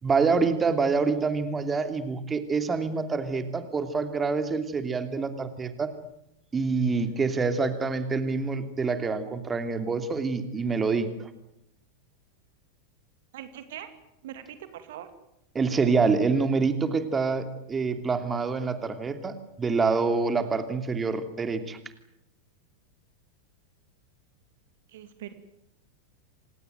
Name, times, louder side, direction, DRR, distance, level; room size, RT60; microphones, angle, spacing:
voice 1, 0.0-5.9 6.5-11.3 15.5-21.8, right 4 dB, 20° right, 9 dB, 2.8 m, -26 dB
voice 2, 13.3-13.9 14.2-15.1 24.9-25.3, right 11 dB, 60° right, 10 dB, 2.6 m, -41 dB
28.0 x 18.5 x 9.3 m, 0.83 s
figure-of-eight pair, 90°, 0 cm